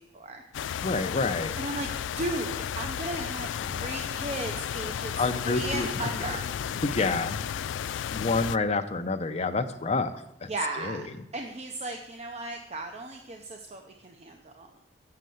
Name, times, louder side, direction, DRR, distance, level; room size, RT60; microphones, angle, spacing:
sound 1, 0.5-8.6, left 9 dB, 90° left, 0.3 m, -33 dB
voice 1, 0.8-1.5 5.2-5.9 6.8-7.4 8.1-10.5 10.8-11.1, left 3 dB, 35° left, 7 dB, 0.6 m, -28 dB
voice 2, 1.6-6.4 8.2-8.3 10.5-11.1 11.3-14.7, right 2 dB, 35° right, 4 dB, 0.7 m, -36 dB
6.8 x 6.6 x 7.7 m, 0.81 s
head